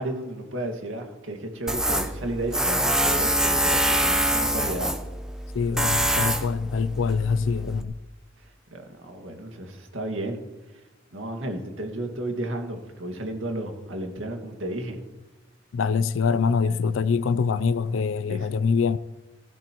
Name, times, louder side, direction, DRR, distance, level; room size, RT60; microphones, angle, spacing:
voice 1, 0.0-5.0 8.7-10.4 11.1-15.0 16.7-16.8 18.3-18.5, right 1 dB, 85° right, 2.0 m, -33 dB
Tools, 1.7-7.8, right 1 dB, 5° right, 0.8 m, -25 dB
voice 2, 5.5-7.9 15.7-19.0, left 5 dB, 85° left, 0.4 m, -24 dB
16.0 x 14.5 x 3.0 m
head